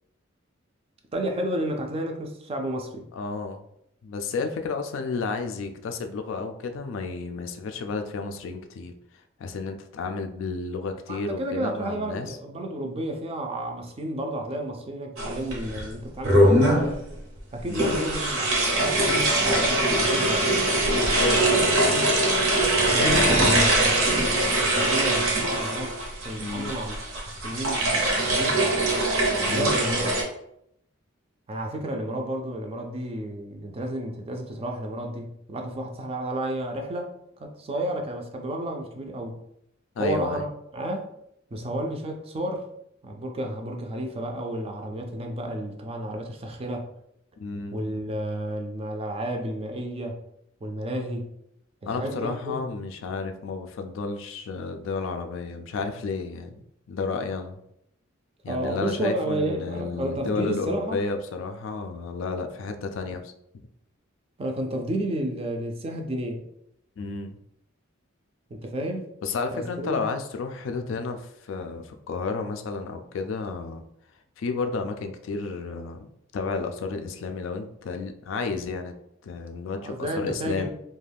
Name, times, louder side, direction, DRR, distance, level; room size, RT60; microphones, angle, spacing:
voice 1, 1.1-3.1 11.1-17.0 17.5-20.5 21.0-21.6 21.9-22.1 22.4-22.5 22.8-27.0 27.4-28.0 28.3-28.6 29.5-30.1 31.5-39.4 40.0-40.5 40.7-41.1 41.5-42.7 43.0-46.9 47.7-50.2 50.6-51.3 51.8-52.8 58.5-61.0 64.4-66.4 68.5-69.1 69.5-70.0 79.8-80.7, right 1 dB, 30° right, 3 dB, 0.4 m, -31 dB
voice 2, 3.1-3.6 4.0-8.9 9.4-12.4 17.7-18.0 21.1-22.0 26.4-26.8 29.4-29.8 40.0-40.4 47.4-47.8 51.8-57.6 58.4-63.3 67.0-67.4 69.2-73.8 74.4-78.9 79.2-80.7, left 4 dB, 65° left, 6 dB, 0.3 m, -32 dB
sound 1, 15.2-15.8 16.2-16.9 17.7-30.2, right 1 dB, 85° right, 0.8 m, -22 dB
2.4 x 2.2 x 3.3 m, 0.76 s
head